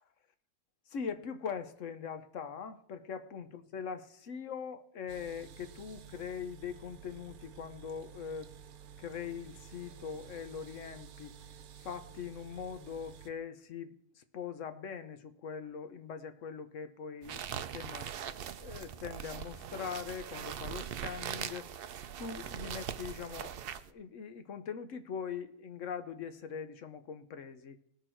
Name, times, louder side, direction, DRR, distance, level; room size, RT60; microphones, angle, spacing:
voice 1, 0.9-8.5 9.0-11.3 11.8-18.1 18.6-21.7 22.2-23.6 23.9-27.8, left 6 dB, 60° left, 10 dB, 1.1 m, -42 dB
sound 1, 5.1-13.3, right 7 dB, 85° right, 1.3 m, -52 dB
sound 2, 17.2-23.9, right 9 dB, 65° right, 0.6 m, -41 dB
18.5 x 6.6 x 4.4 m, 0.71 s
omnidirectional pair, 1.5 m